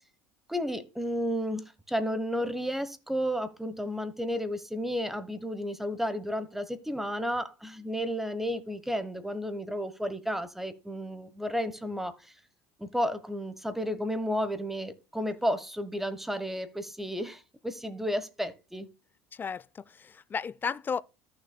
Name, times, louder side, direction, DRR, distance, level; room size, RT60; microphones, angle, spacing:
voice 1, 0.5-12.1 12.8-18.9, equal, 5° right, 1.1 m, -32 dB
voice 2, 19.4-21.0, left 6 dB, 20° left, 0.3 m, -34 dB
14.0 x 6.4 x 2.2 m
supercardioid pair, 120°, 9 cm